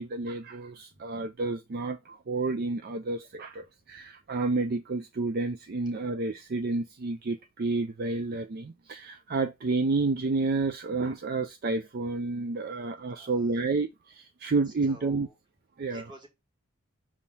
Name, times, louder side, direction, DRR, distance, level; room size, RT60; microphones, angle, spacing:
voice 1, 0.0-15.3 15.8-16.0, right 3 dB, 45° right, 0.4 m, -30 dB
voice 2, 3.6-4.0 13.1-13.5 14.7-15.3 15.9-16.3, right 1 dB, 20° right, 1.6 m, -52 dB
6.2 x 3.7 x 4.1 m
head